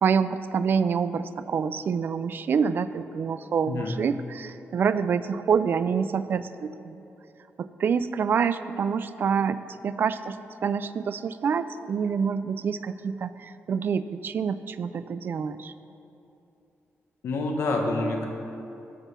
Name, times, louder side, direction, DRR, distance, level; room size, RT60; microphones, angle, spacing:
voice 1, 0.0-7.0 7.6-9.6 9.8-10.4 10.6-15.7, right 6 dB, 45° right, 13 dB, 0.3 m, -27 dB
voice 2, 3.7-4.0 17.2-18.3, left 2 dB, 70° left, 2 dB, 1.2 m, -27 dB
13.0 x 5.4 x 5.8 m, 2.8 s
wide cardioid pair, 180°, 5 cm